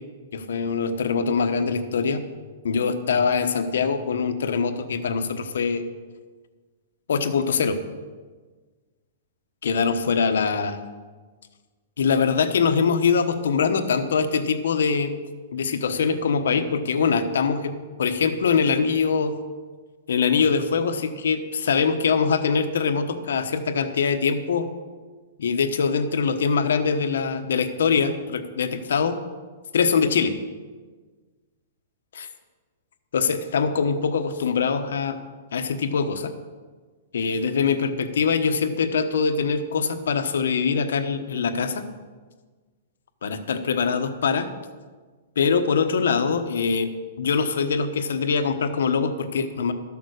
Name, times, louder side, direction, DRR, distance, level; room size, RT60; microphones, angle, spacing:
voice 1, 0.3-2.2 2.6-5.8 7.1-7.8 9.6-10.8 12.0-15.1 15.5-17.7 18.0-19.3 20.1-24.7 25.4-29.2 29.7-30.3 32.1-32.3 33.1-35.2 35.5-36.3 37.1-41.8 43.2-44.5 45.4-46.9 47.2-49.7, left 5 dB, 85° left, 8 dB, 1.2 m, -23 dB
13.0 x 7.2 x 6.5 m, 1.4 s
hypercardioid pair, 175°, 0 cm